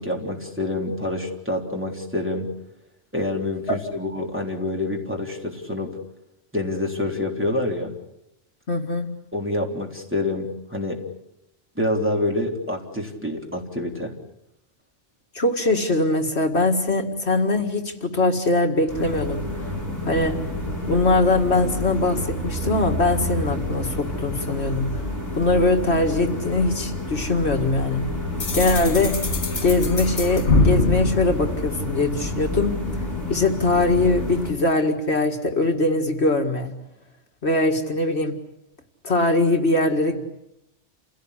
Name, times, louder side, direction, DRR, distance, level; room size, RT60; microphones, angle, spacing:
voice 1, 0.0-2.5 3.1-5.9 6.5-7.9 9.3-11.0 11.8-14.1, left 1 dB, 10° right, 0 dB, 3.6 m, -27 dB
voice 2, 8.7-9.1 15.3-19.4 20.1-20.4 20.9-24.9 25.3-28.0 28.5-29.2 29.6-32.7 33.3-36.7 37.4-38.3 39.0-40.2, left 2 dB, 70° left, 4 dB, 2.3 m, -21 dB
sound 1, 18.9-34.5, left 1 dB, 15° left, 6.0 m, -29 dB
sound 2, 28.4-32.3, left 2 dB, 85° left, 2.6 m, -23 dB
28.5 x 17.0 x 10.0 m, 0.90 s
omnidirectional pair, 1.2 m